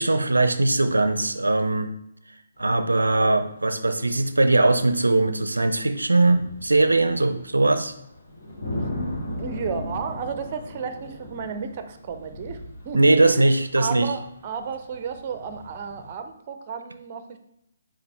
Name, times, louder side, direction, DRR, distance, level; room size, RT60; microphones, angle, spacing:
voice 1, 0.0-1.9 2.6-7.9 12.9-14.1, right 2 dB, 80° right, 9 dB, 0.5 m, -20 dB
sound 1, 2.6-2.8 3.1-3.2 4.1-4.2 5.4-16.1, left 1 dB, 60° left, 2.5 m, -37 dB
voice 2, 9.4-13.2 13.8-17.4, right 6 dB, 35° right, 8 dB, 0.6 m, -33 dB
5.9 x 5.0 x 3.2 m, 0.79 s
figure-of-eight pair, 140°, 0 cm